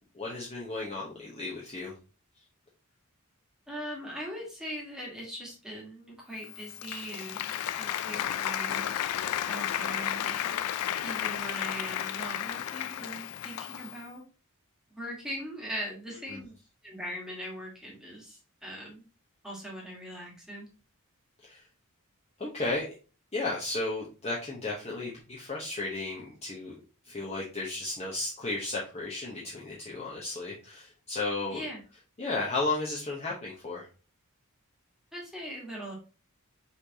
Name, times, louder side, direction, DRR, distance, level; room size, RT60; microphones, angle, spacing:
voice 1, 0.1-1.9 16.3-16.4 21.4-21.6 22.4-22.8 23.3-26.7 27.0-31.6 32.2-33.9, left 2 dB, 30° left, -5 dB, 0.9 m, -34 dB
voice 2, 3.7-8.9 9.5-10.6 11.0-14.2 14.9-16.5 16.8-19.1 19.4-20.7 31.5-31.8 35.1-35.9, equal, ahead, -3 dB, 1.5 m, -40 dB
Applause, 6.4-14.1, left 11 dB, 80° left, 0.3 m, -33 dB
5.7 x 3.3 x 2.8 m, 0.35 s
head